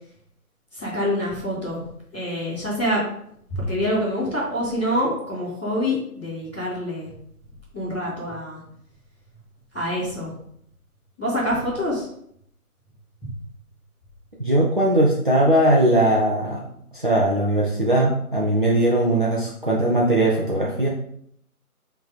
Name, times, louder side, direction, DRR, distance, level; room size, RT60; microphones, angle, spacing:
voice 1, 0.7-1.8 2.1-3.1 3.5-7.1 7.7-8.6 9.7-10.3 11.2-12.1 13.2-13.3, equal, 10° left, -15 dB, 2.3 m, -26 dB
voice 2, 14.4-16.6 16.9-20.9, right 1 dB, 35° right, -3 dB, 0.8 m, -19 dB
7.6 x 3.5 x 4.1 m, 0.69 s
figure-of-eight pair, 165°, 45 cm